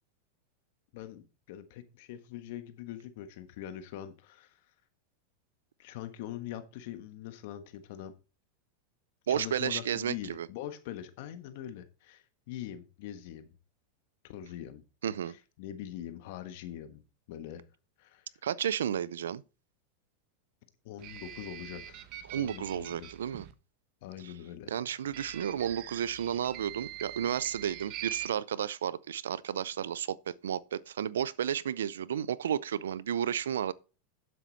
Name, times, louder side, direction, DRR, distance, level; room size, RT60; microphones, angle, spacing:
voice 1, 0.9-4.5 5.8-8.1 9.3-13.5 14.2-14.8 15.6-17.0 17.3-17.6 18.0-18.2 20.8-22.1 22.4-23.1 24.0-24.7, left 11 dB, 65° left, 1.4 m, -43 dB
voice 2, 9.3-10.5 15.0-15.4 18.4-19.4 22.2-23.5 24.2-24.3 24.7-33.7, right 9 dB, 85° right, 0.5 m, -32 dB
sound 1, 21.0-23.5 25.1-28.3, right 12 dB, 50° right, 1.1 m, -43 dB
9.1 x 7.8 x 4.1 m
hypercardioid pair, 110°, 0 cm